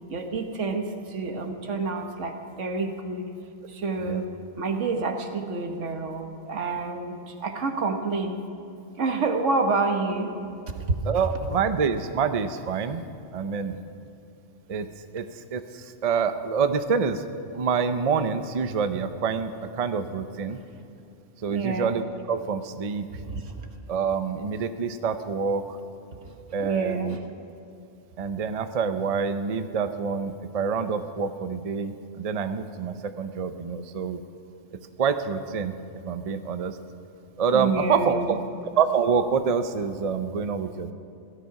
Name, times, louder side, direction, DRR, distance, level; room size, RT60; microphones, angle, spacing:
voice 1, 0.1-3.3 3.7-4.3 4.6-8.4 9.0-10.3 10.7-10.8 21.5-21.9 23.1-23.5 26.1-26.3 26.6-27.2 37.5-38.4, right 3 dB, 80° right, 5 dB, 1.6 m, -28 dB
voice 2, 11.0-13.0 13.3-13.8 14.7-14.9 15.1-15.3 15.5-17.2 17.5-20.6 21.4-23.1 23.9-25.8 26.5-27.2 28.2-34.2 35.0-35.7 36.0-36.8 37.4-38.4 38.8-40.9, right 6 dB, 40° right, 9 dB, 0.6 m, -26 dB
17.0 x 12.5 x 5.8 m, 2.7 s
omnidirectional pair, 1.2 m